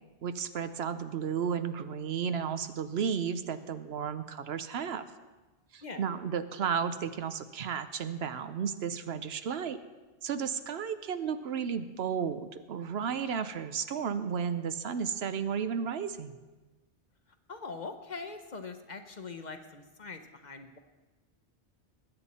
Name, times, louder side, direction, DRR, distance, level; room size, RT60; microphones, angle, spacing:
voice 1, 0.2-5.0 5.7-9.8 10.2-16.4, right 7 dB, 65° right, 11 dB, 0.9 m, -33 dB
voice 2, 17.5-20.8, left 4 dB, 45° left, 7 dB, 0.8 m, -42 dB
20.5 x 8.9 x 4.2 m, 1.2 s
omnidirectional pair, 1.2 m